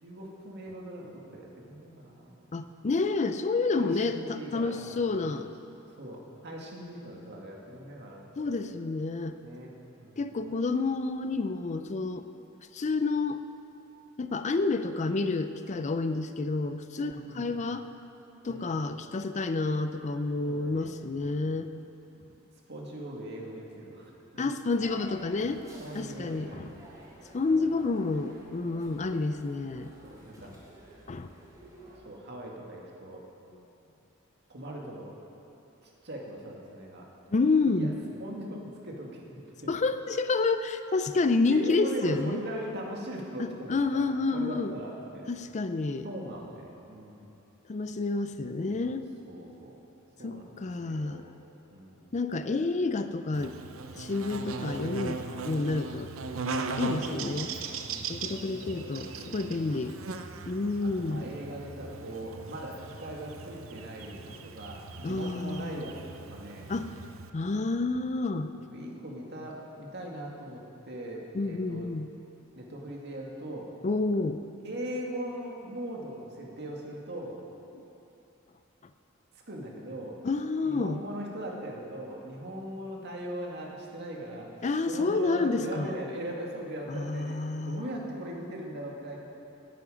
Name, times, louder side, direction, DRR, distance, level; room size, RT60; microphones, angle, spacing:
voice 1, 0.0-2.7 3.8-5.2 6.0-8.5 9.4-9.7 10.0-10.3 16.9-17.6 18.4-18.8 20.4-20.9 21.3-21.5 22.7-24.5 25.8-26.9 27.5-27.7 30.0-30.6 32.0-33.2 34.5-35.1 35.8-37.1 37.6-37.9 38.2-39.7 41.5-44.0 44.3-45.3 46.0-47.3 48.4-49.8 50.2-51.3 51.7-52.1 56.3-56.6 57.0-58.8 59.1-60.0 60.8-67.0 68.7-71.9 72.5-73.7 74.6-77.4 79.3-80.2 80.6-89.3, right 1 dB, 55° right, -1 dB, 2.1 m, -40 dB
voice 2, 2.5-5.5 8.4-9.4 10.2-12.3 12.7-13.4 14.2-17.8 18.4-21.7 24.4-25.6 25.9-26.8 27.3-29.9 31.1-31.3 37.3-38.0 39.7-42.4 43.7-44.7 45.3-46.1 47.7-49.1 50.2-51.3 52.1-53.6 53.9-56.1 56.5-57.5 58.1-60.0 60.5-61.3 64.3-64.4 65.0-65.8 66.7-66.9 67.3-68.5 71.3-72.1 73.8-74.4 77.7-77.8 80.2-81.0 84.6-86.0 86.9-87.9, left 3 dB, 35° left, 10 dB, 0.4 m, -29 dB
sound 1, 24.8-32.0, right 2 dB, 15° right, 2.9 m, -51 dB
Buzz, 53.3-67.3, right 4 dB, 75° right, 0.7 m, -39 dB
18.0 x 9.4 x 5.1 m, 2.9 s
head